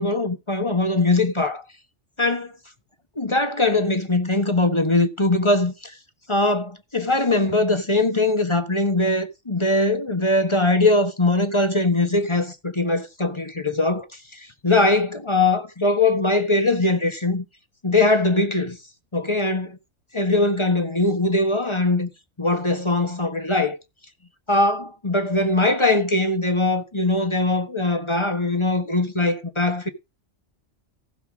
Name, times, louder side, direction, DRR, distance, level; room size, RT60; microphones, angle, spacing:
voice 1, 0.0-1.6 2.2-2.5 3.2-5.9 6.3-14.1 14.3-17.4 17.8-18.8 19.1-19.8 20.1-22.1 22.4-23.8 24.5-29.9, left 2 dB, 25° left, 1.3 m, -21 dB
15.5 x 5.7 x 6.4 m
omnidirectional pair, 1.3 m